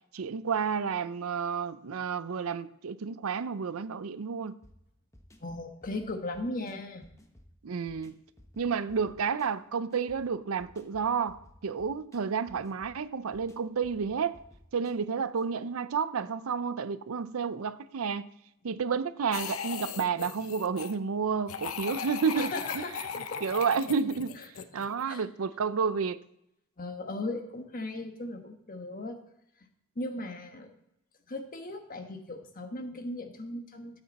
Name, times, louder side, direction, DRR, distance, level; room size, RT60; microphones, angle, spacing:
voice 1, 0.1-4.6 7.6-8.1 8.6-14.4 14.7-18.3 18.6-22.8 23.4-24.4 24.7-26.2, right 6 dB, 90° right, 0.5 m, -31 dB
sound 1, 4.6-15.5, equal, 15° left, 1.0 m, -58 dB
voice 2, 5.4-7.0 22.3-23.4 24.7-25.2 26.8-29.2 29.9-30.8 31.3-34.0, left 2 dB, 45° left, 1.2 m, -38 dB
sound 2, 19.3-21.0 21.5-25.0, left 6 dB, 90° left, 0.7 m, -38 dB
13.0 x 8.1 x 4.2 m
head